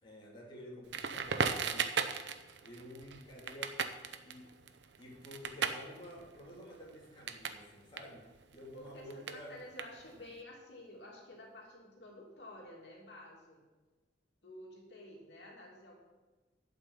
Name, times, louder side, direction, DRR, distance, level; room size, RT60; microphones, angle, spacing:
voice 1, 0.0-1.9 2.6-3.7 4.2-4.5 5.0-8.2 8.5-9.5, left 1 dB, 30° left, -4 dB, 2.9 m, -50 dB
Crackle, 0.9-7.6 7.9-10.3, right 6 dB, 85° right, 0.8 m, -37 dB
voice 2, 8.7-13.6 14.4-16.0, left 1 dB, 75° left, -2 dB, 2.9 m, -51 dB
11.5 x 6.0 x 8.1 m, 1.2 s
head